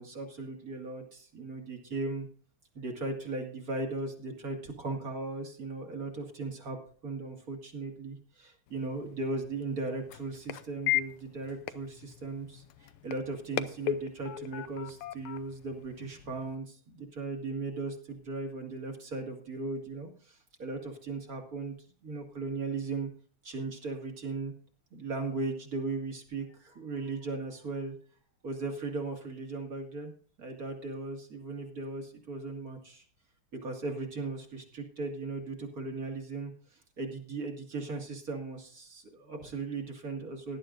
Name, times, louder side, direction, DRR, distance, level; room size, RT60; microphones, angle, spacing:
voice 1, 0.0-2.3 2.7-6.8 7.0-21.8 22.0-23.1 23.4-24.5 24.9-27.9 28.4-30.1 30.4-33.0 33.6-40.6, right 3 dB, 40° right, 3 dB, 2.4 m, -37 dB
sound 1, 8.7-16.6, left 12 dB, 80° left, 1.5 m, -38 dB
18.0 x 11.0 x 2.6 m, 0.43 s
omnidirectional pair, 2.4 m